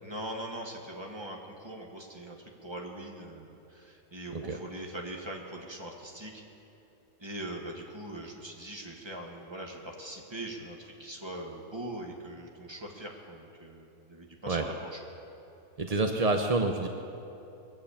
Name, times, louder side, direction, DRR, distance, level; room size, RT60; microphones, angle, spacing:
voice 1, 0.0-6.4 7.2-15.0, right 1 dB, 15° right, 0 dB, 1.7 m, -41 dB
voice 2, 15.8-16.9, right 3 dB, 45° right, 4 dB, 0.4 m, -27 dB
21.0 x 7.5 x 8.6 m, 2.9 s
omnidirectional pair, 1.8 m